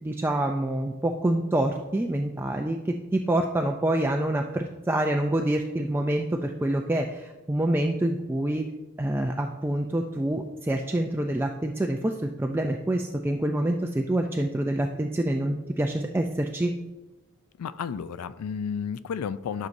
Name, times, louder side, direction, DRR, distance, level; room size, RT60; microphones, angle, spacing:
voice 1, 0.0-8.6 9.0-16.7, right 1 dB, 10° right, 2 dB, 0.3 m, -26 dB
voice 2, 17.6-19.7, left 6 dB, 90° left, 15 dB, 0.4 m, -32 dB
12.5 x 6.5 x 2.6 m, 1.1 s
head